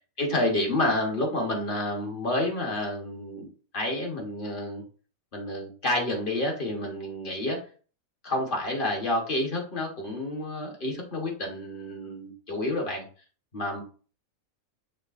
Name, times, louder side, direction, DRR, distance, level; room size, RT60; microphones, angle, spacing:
voice 1, 0.2-3.5 3.7-4.8 5.3-7.6 8.2-13.1 13.5-13.8, left 1 dB, 40° left, 1 dB, 1.2 m, -29 dB
6.5 x 3.3 x 2.5 m, 0.39 s
omnidirectional pair, 1.5 m